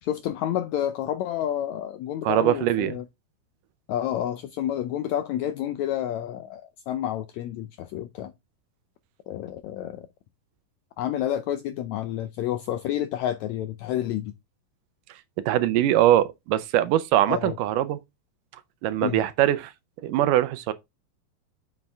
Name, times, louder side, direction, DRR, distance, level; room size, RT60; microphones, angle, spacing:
voice 1, 0.0-3.0 3.9-8.3 9.3-10.1 11.0-14.3 17.3-17.6 19.0-19.2, left 11 dB, 80° left, 1.6 m, -29 dB
voice 2, 2.2-3.0 15.5-18.0 18.8-19.7 20.0-20.7, right 12 dB, 80° right, 2.2 m, -22 dB
7.9 x 7.2 x 3.5 m
omnidirectional pair, 3.9 m